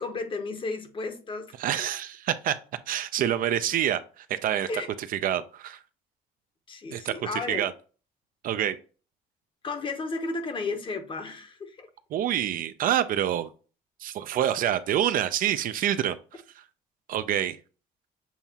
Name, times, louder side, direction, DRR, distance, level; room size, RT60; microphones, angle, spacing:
voice 1, 0.0-1.9 4.7-4.9 6.7-7.6 9.6-11.9, left 3 dB, 30° left, 0.8 m, -33 dB
voice 2, 1.6-2.5 2.9-4.7 5.1-5.8 6.9-7.7 8.4-8.8 12.1-13.5 14.0-16.6 17.1-17.6, right 11 dB, 55° right, 0.4 m, -27 dB
7.0 x 2.4 x 2.7 m
cardioid pair, 110°, 17 cm